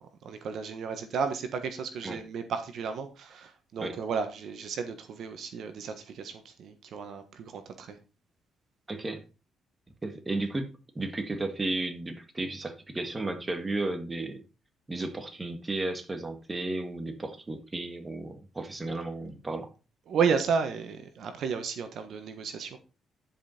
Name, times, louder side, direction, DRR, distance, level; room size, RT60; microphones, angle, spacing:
voice 1, 0.2-8.0 20.1-22.8, right 6 dB, 70° right, 1.3 m, -32 dB
voice 2, 8.9-9.2 10.0-10.7 10.9-14.4 14.9-19.7, right 2 dB, 20° right, 1.6 m, -33 dB
10.5 x 5.3 x 4.3 m
cardioid pair, 90°, 0 cm